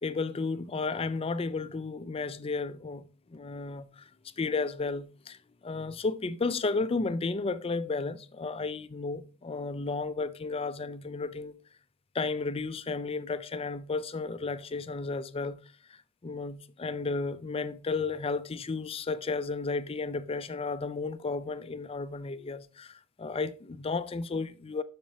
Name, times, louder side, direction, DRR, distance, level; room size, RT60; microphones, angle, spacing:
voice 1, 0.0-3.0 3.3-4.0 4.4-11.6 12.1-15.6 16.2-24.8, left 3 dB, 30° left, 0.4 m, -33 dB
7.3 x 6.7 x 2.7 m
head